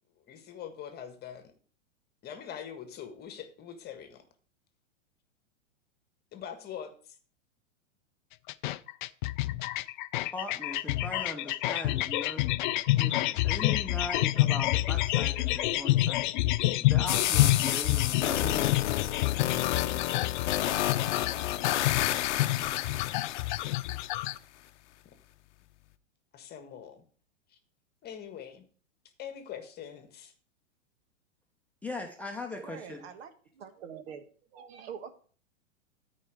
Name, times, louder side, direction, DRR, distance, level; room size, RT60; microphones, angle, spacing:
voice 1, 0.3-1.5 2.2-4.2 6.3-7.1 26.3-27.0 27.5-27.6 28.0-28.6 29.2-30.3, left 8 dB, 25° left, 8 dB, 1.5 m, -43 dB
sound 1, 8.5-24.4, left 17 dB, 45° left, 0.4 m, -28 dB
voice 2, 10.3-12.5 13.0-16.3 16.9-18.7 31.8-33.0, left 2 dB, 5° left, 1 dB, 0.9 m, -39 dB
sound 2, 17.1-24.1, left 12 dB, 65° left, 0.7 m, -31 dB
voice 3, 32.6-34.2 34.5-35.1, right 7 dB, 55° right, 9 dB, 1.5 m, -45 dB
13.0 x 4.9 x 4.8 m, 0.43 s
hypercardioid pair, 115°, 37 cm